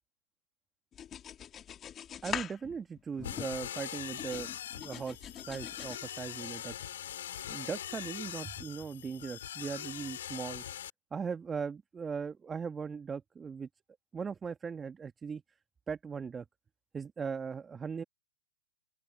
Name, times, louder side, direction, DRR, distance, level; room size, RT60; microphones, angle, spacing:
sound 1, 0.9-3.8 4.2-6.0, left 9 dB, 25° left, 3.0 m, -43 dB
voice 1, 2.2-6.7 7.5-10.6 11.1-13.7 14.1-15.4 15.9-16.4 16.9-18.0, right 6 dB, 15° right, 1.7 m, -39 dB
sound 2, 3.2-10.9, left 11 dB, 65° left, 5.7 m, -42 dB
open air
hypercardioid pair, 115°, 0 cm